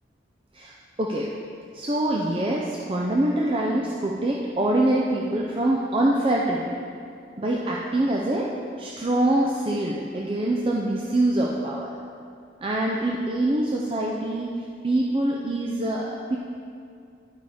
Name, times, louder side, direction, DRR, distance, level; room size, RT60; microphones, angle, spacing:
voice 1, 1.0-1.3 1.7-6.8 7.4-8.5 8.8-11.9 12.6-14.5 14.8-16.4, right 1 dB, 30° right, -3 dB, 0.5 m, -24 dB
11.5 x 4.9 x 3.5 m, 2.4 s
head